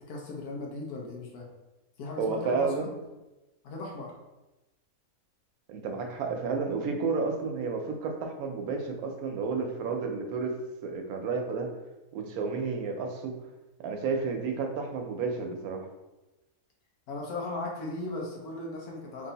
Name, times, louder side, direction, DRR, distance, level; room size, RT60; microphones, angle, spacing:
voice 1, 0.1-1.5 2.0-2.9 3.6-4.1 17.1-19.3, left 2 dB, 90° left, -1 dB, 1.3 m, -37 dB
voice 2, 2.2-2.9 5.7-10.5 10.8-11.7 12.1-13.4 13.8-15.9, right 4 dB, 80° right, 4 dB, 1.1 m, -31 dB
3.2 x 2.6 x 4.0 m, 1.0 s
omnidirectional pair, 1.6 m